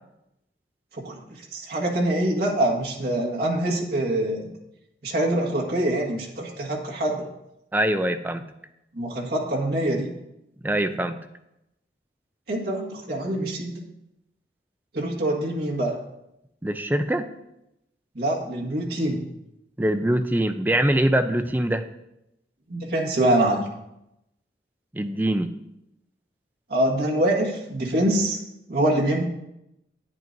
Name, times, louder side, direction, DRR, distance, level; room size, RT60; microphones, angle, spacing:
voice 1, 0.9-4.5 5.0-7.3 8.9-10.1 12.5-13.8 14.9-15.9 18.1-19.3 22.7-23.7 26.7-28.4 28.7-29.2, right 1 dB, 60° right, -2 dB, 1.7 m, -24 dB
voice 2, 7.7-8.4 10.6-11.2 16.6-17.3 19.8-21.8 24.9-25.5, right 1 dB, 10° right, 8 dB, 0.4 m, -23 dB
10.5 x 9.1 x 2.6 m, 0.87 s
head